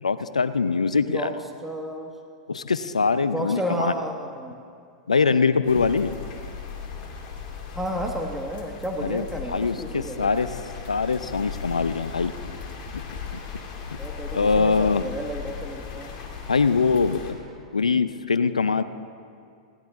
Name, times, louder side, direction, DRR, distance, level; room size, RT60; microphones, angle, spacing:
voice 1, 0.0-1.3 2.5-3.9 5.1-6.2 9.0-10.5 10.9-12.3 12.9-13.0 13.3-13.4 14.3-15.1 16.5-17.4 17.7-18.8, left 4 dB, 90° left, 13 dB, 0.5 m, -23 dB
voice 2, 1.6-2.1 3.3-4.7 7.7-10.5 14.0-16.1, right 1 dB, 5° right, 2 dB, 1.3 m, -32 dB
sound 1, 5.6-17.3, left 6 dB, 40° left, 2.6 m, -37 dB
20.0 x 16.5 x 3.6 m, 2.3 s
hypercardioid pair, 100°, 4 cm